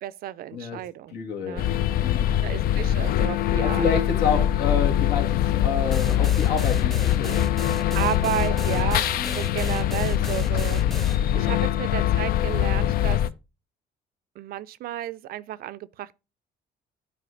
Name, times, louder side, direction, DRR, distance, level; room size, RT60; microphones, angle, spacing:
voice 1, 0.0-1.2 1.4-1.7 2.4-3.8 7.9-10.8 11.3-13.2 14.4-16.2, right 13 dB, 60° right, 0.4 m, -32 dB
voice 2, 1.1-2.3 3.6-7.5 8.1-8.8 9.2-9.5 11.4-11.5, left 5 dB, 80° left, 2.1 m, -29 dB
sound 1, 1.6-13.3, left 11 dB, 60° left, 0.4 m, -23 dB
sound 2, 5.9-11.2, equal, ahead, 0.5 m, -35 dB
9.1 x 4.1 x 3.8 m
cardioid pair, 110°, 17 cm